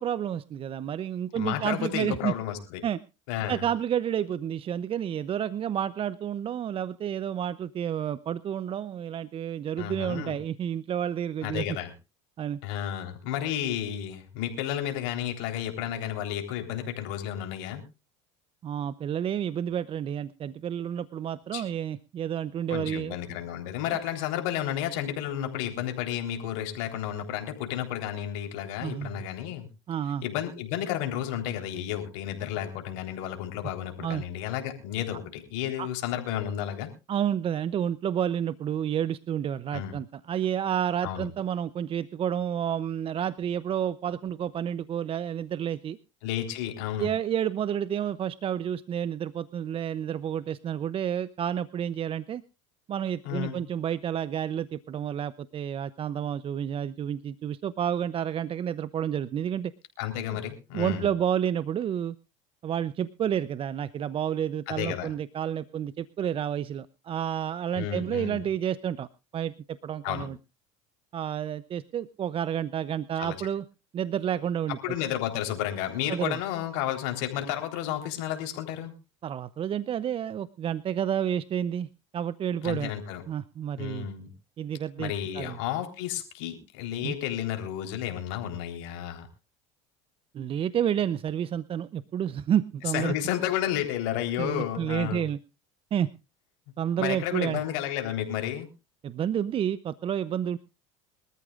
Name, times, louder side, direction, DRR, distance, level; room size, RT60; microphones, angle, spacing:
voice 1, 0.0-2.3 2.8-3.0 3.5-11.8 12.4-12.6 18.6-23.2 28.8-29.2 29.9-30.2 34.0-34.2 35.8-35.9 37.1-46.0 47.0-52.4 52.9-59.7 60.7-62.1 62.6-69.1 69.3-70.4 71.1-73.6 73.9-74.8 76.1-76.4 79.2-81.9 82.1-82.9 83.3-84.1 84.6-85.6 87.0-87.2 90.3-93.1 94.4-95.4 95.9-96.1 96.8-97.6 99.0-100.6, right 9 dB, 35° right, 17 dB, 0.6 m, -30 dB
voice 2, 1.3-2.8 3.3-3.6 9.8-10.4 11.4-11.9 12.6-17.8 21.5-21.6 22.7-29.7 30.2-36.9 39.7-40.0 41.0-41.3 46.2-47.1 53.2-53.6 60.0-61.1 64.7-65.1 67.7-68.4 70.0-70.3 73.2-73.4 74.8-78.9 82.6-83.2 83.8-84.3 85.0-89.3 92.9-95.2 97.0-98.7, left 11 dB, 70° left, 5 dB, 3.8 m, -32 dB
24.0 x 13.5 x 2.4 m, 0.30 s
supercardioid pair, 95°, 16 cm